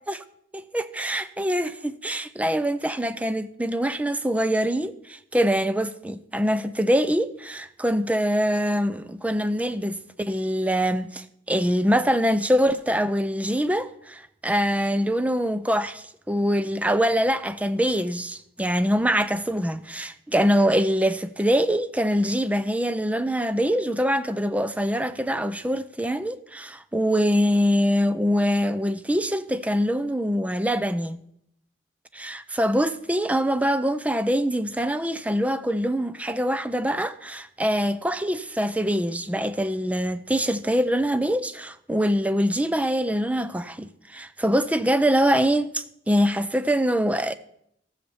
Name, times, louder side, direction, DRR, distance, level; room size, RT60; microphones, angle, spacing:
voice 1, 0.5-31.2 32.1-47.4, equal, 5° right, 0.5 m, -24 dB
14.0 x 6.6 x 7.0 m
head